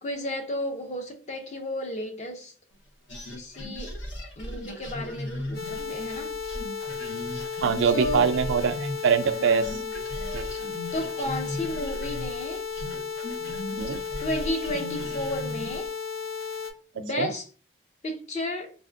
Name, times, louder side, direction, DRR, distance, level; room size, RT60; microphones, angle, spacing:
voice 1, 0.0-2.5 3.3-3.9 4.4-6.4 7.8-8.3 9.3-9.9 10.9-12.6 14.2-15.9 16.9-17.4 18.0-18.7, left 1 dB, 40° left, 0.5 m, -33 dB
sound 1, 3.1-9.4 9.6-15.9, left 1 dB, 85° left, 1.0 m, -37 dB
sound 2, 5.5-16.7, left 6 dB, 60° left, 1.0 m, -34 dB
voice 2, 7.6-9.8 10.3-10.7 13.8-14.0 17.0-17.3, right 6 dB, 90° right, 0.3 m, -24 dB
3.4 x 2.5 x 2.4 m
head